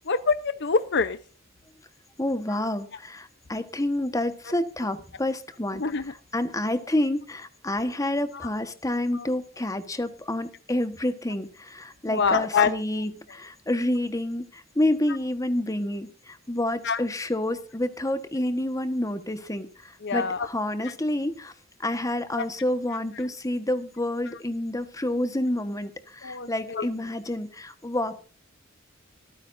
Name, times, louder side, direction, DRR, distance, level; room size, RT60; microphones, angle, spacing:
voice 1, 0.1-1.2 5.8-6.0 12.1-12.7 16.8-17.0 20.0-20.5 22.4-22.5 26.2-26.9, left 5 dB, 60° left, 13 dB, 0.8 m, -25 dB
voice 2, 2.2-21.5 21.8-28.2, left 1 dB, 15° left, 10 dB, 1.3 m, -28 dB
24.5 x 9.5 x 2.6 m, 0.37 s
head